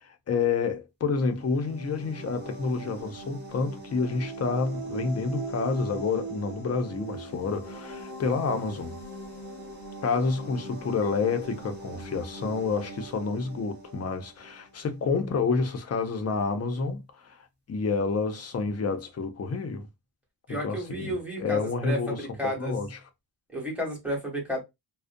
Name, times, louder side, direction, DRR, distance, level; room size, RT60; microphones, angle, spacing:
voice 1, 0.0-9.0 10.0-17.4 17.7-19.9 20.5-22.3 22.6-23.0, left 4 dB, 35° left, 0.4 m, -29 dB
sound 1, 1.2-14.8, right 3 dB, 25° right, 0.9 m, -41 dB
voice 2, 20.5-22.7 23.5-24.6, equal, 5° right, 0.9 m, -32 dB
2.4 x 2.0 x 2.5 m
wide cardioid pair, 175°, 46 cm